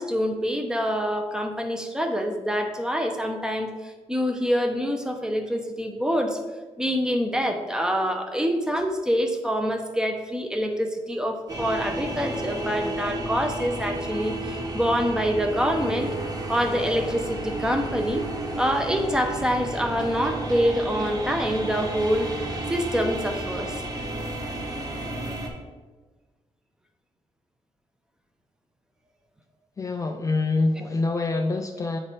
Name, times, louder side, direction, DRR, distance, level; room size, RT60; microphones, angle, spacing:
voice 1, 0.0-6.4 6.8-16.1 16.5-18.3 18.6-22.4 22.7-23.8 30.8-30.9, equal, 5° right, 4 dB, 0.7 m, -26 dB
sound 1, 11.5-25.5, right 1 dB, 35° right, 1.2 m, -32 dB
voice 2, 29.8-32.0, left 3 dB, 30° left, 5 dB, 0.4 m, -25 dB
8.6 x 3.3 x 4.2 m, 1.3 s
cardioid pair, 110°, 12 cm